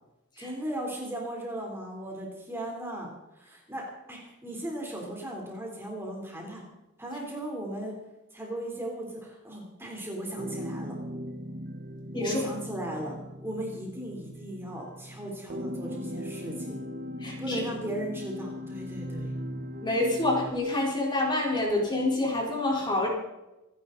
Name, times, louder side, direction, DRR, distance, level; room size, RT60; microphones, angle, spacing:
voice 1, 0.4-6.7 7.0-8.0 8.3-11.0 12.2-13.2 13.4-16.8 17.4-19.4, right 1 dB, 10° right, -1 dB, 3.6 m, -37 dB
sound 1, 10.4-20.5, equal, 45° right, 1.0 m, -39 dB
voice 2, 17.2-17.6 19.8-23.1, left 2 dB, 20° left, -2 dB, 4.0 m, -27 dB
26.5 x 11.0 x 4.0 m, 0.99 s
head